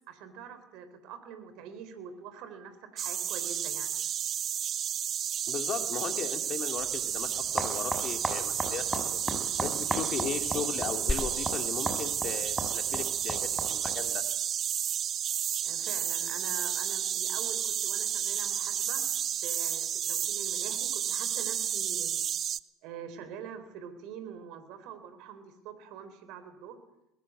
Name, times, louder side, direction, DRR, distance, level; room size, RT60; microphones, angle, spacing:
voice 1, 0.1-3.9 15.6-22.2 22.8-26.8, right 7 dB, 60° right, 10 dB, 3.8 m, -45 dB
sound 1, 3.0-22.6, right 9 dB, 45° right, 0.8 m, -32 dB
voice 2, 5.5-9.0 9.6-13.4 13.7-14.2, left 7 dB, 45° left, 6 dB, 2.8 m, -37 dB
sound 2, 6.8-14.1, right 1 dB, 10° right, 6.2 m, -37 dB
sound 3, 14.9-21.1, left 2 dB, 10° left, 2.2 m, -43 dB
21.5 x 20.0 x 8.0 m, 0.90 s
hypercardioid pair, 70°, 0 cm